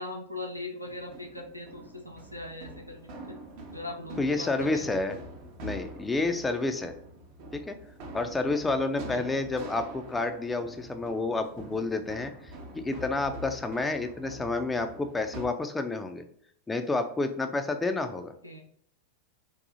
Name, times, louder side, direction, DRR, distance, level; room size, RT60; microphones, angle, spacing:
voice 1, 0.0-3.0 3.3-3.4 3.7-4.9 9.1-9.4 18.1-18.6, left 2 dB, 90° left, 0 dB, 0.6 m, -40 dB
sound 1, 0.8-15.5, right 1 dB, 45° right, 0.7 m, -45 dB
voice 2, 4.2-5.1 5.6-6.9 7.5-7.7 8.1-16.2 16.7-18.3, left 3 dB, 10° left, 6 dB, 0.3 m, -30 dB
3.7 x 2.6 x 2.5 m, 0.66 s
figure-of-eight pair, 90°, 0 cm